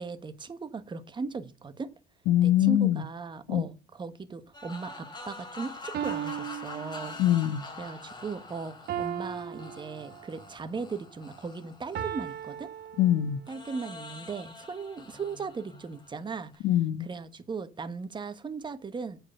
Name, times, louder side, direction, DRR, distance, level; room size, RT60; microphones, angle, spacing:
voice 1, 0.0-1.9 2.4-7.2 7.8-12.7 13.5-16.6 17.0-19.2, right 4 dB, 25° right, 1.1 m, -38 dB
voice 2, 2.3-3.0 3.5-3.6 7.2-7.6 13.0-13.4 16.6-17.1, left 12 dB, 85° left, 0.9 m, -23 dB
sound 1, 4.5-12.8 13.5-16.6, left 3 dB, 25° left, 2.6 m, -45 dB
sound 2, 5.2-5.3 5.9-7.5 8.9-10.5 11.9-13.6, right 10 dB, 65° right, 1.0 m, -37 dB
8.5 x 4.7 x 6.3 m
cardioid pair, 110°, 17 cm